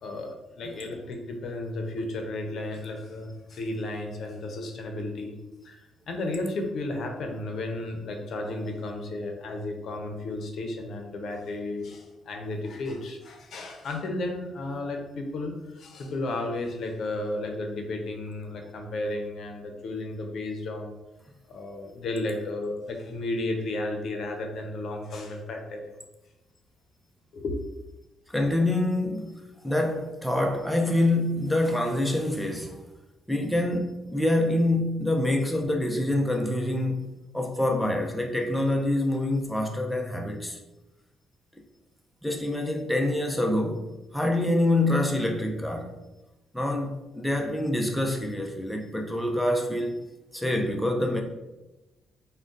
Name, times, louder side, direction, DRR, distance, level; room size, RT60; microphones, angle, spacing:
voice 1, 0.0-5.4 5.6-20.9 21.5-25.9 27.3-27.6, left 2 dB, 65° left, 0.6 m, -33 dB
voice 2, 28.3-32.8 33.3-40.6 42.2-46.0 46.5-50.1 50.3-51.2, left 1 dB, 5° left, 0.5 m, -26 dB
3.7 x 2.2 x 3.7 m
cardioid pair, 90°, 0 cm